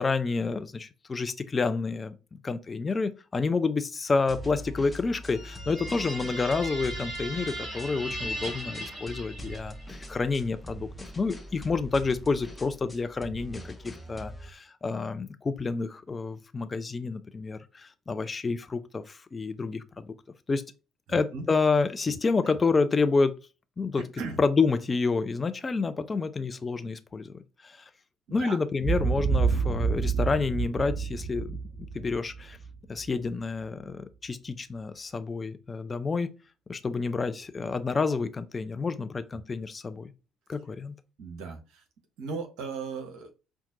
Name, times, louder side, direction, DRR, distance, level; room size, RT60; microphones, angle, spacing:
voice 1, 0.0-10.9 11.2-20.1 20.5-20.6 21.1-23.4 23.8-24.0 24.4-27.3 27.6-27.9 28.3-31.6 31.9-32.6 32.9-36.3 36.7-40.1 40.5-40.9, left 4 dB, 30° left, 0.4 m, -29 dB
sound 1, 4.3-14.5, equal, 10° left, 0.8 m, -43 dB
sound 2, 5.2-10.0, right 1 dB, 35° right, 1.5 m, -38 dB
voice 2, 21.1-21.5 22.1-22.2 24.2-24.4 28.3-28.6 29.5-29.6 41.2-41.8 42.2-43.3, right 4 dB, 60° right, 0.8 m, -37 dB
Boom, 28.8-33.1, right 5 dB, 5° right, 1.4 m, -28 dB
5.6 x 2.3 x 2.6 m
figure-of-eight pair, 50°, 0 cm